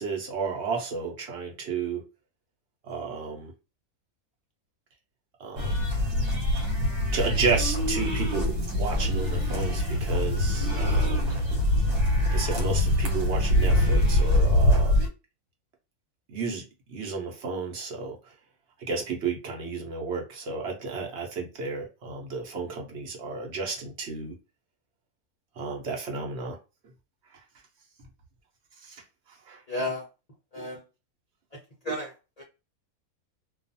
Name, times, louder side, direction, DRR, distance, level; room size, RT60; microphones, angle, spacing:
voice 1, 0.0-2.0 2.9-3.5 5.4-5.7 7.1-11.4 12.3-14.9 16.3-16.6 16.9-18.2 18.8-24.3 25.6-26.6 28.8-29.0 29.5-29.6, right 4 dB, 55° right, 0.9 m, -32 dB
sound 1, 5.6-15.1, left 1 dB, 75° right, 1.4 m, -24 dB
voice 2, 29.7-30.0 30.5-30.8 31.8-32.1 32.4-32.5, left 1 dB, 45° left, 0.5 m, -31 dB
2.4 x 2.4 x 2.6 m
omnidirectional pair, 1.6 m